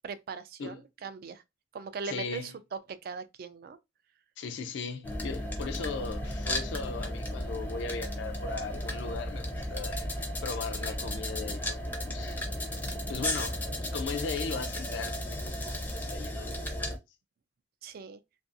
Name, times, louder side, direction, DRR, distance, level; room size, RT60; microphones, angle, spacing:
voice 1, 0.0-1.4 1.7-3.8 17.8-18.2, right 5 dB, 50° right, 0.3 m, -40 dB
voice 2, 2.0-2.5 4.4-10.0 10.4-12.4 13.1-16.5, left 4 dB, 70° left, 0.4 m, -38 dB
sound 1, 5.0-17.0, left 1 dB, 10° left, 0.5 m, -34 dB
2.5 x 2.3 x 2.5 m
head